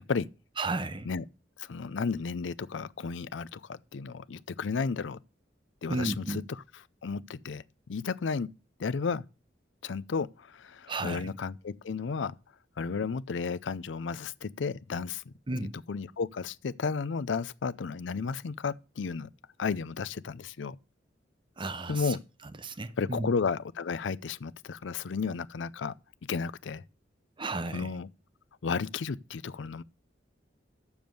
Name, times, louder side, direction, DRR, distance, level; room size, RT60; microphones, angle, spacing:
voice 1, 0.6-1.1 5.9-6.4 10.9-11.3 15.5-15.7 21.6-22.2 22.6-23.3 27.4-28.0, right 2 dB, 25° right, 0.7 m, -33 dB
voice 2, 1.6-5.2 5.8-6.4 7.0-8.5 8.8-9.2 9.8-12.3 12.8-15.2 15.9-19.3 19.6-20.8 21.9-22.2 23.0-25.9 26.3-26.8 27.7-28.1 28.6-29.8, left 5 dB, 80° left, 0.5 m, -33 dB
7.1 x 7.0 x 7.7 m
head